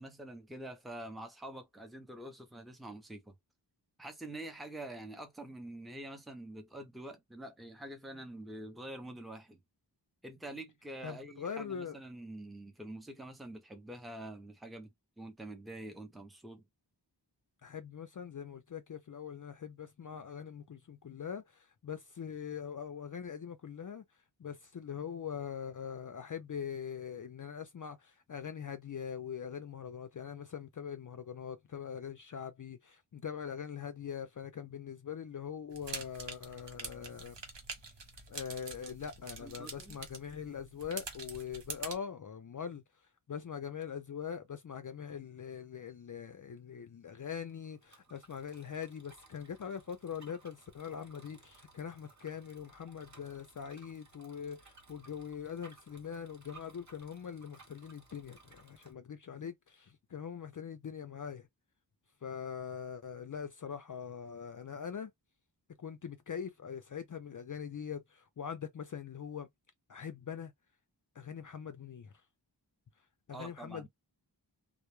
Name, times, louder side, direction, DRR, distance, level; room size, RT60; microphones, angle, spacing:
voice 1, 0.0-3.3 4.0-9.6 10.2-14.9 15.2-16.6 39.4-40.0 73.3-73.9, right 1 dB, ahead, 0.6 m, -46 dB
voice 2, 11.0-12.0 17.6-24.0 24.4-37.4 38.3-42.8 43.3-61.4 62.2-65.1 65.8-69.5 69.9-70.5 71.2-72.1 73.3-73.9, left 7 dB, 50° left, 0.4 m, -42 dB
sound 1, 35.7-42.0, right 4 dB, 85° right, 0.7 m, -46 dB
Bicycle, 47.2-58.9, right 3 dB, 40° right, 0.8 m, -60 dB
2.1 x 2.1 x 3.0 m
wide cardioid pair, 70°, 42 cm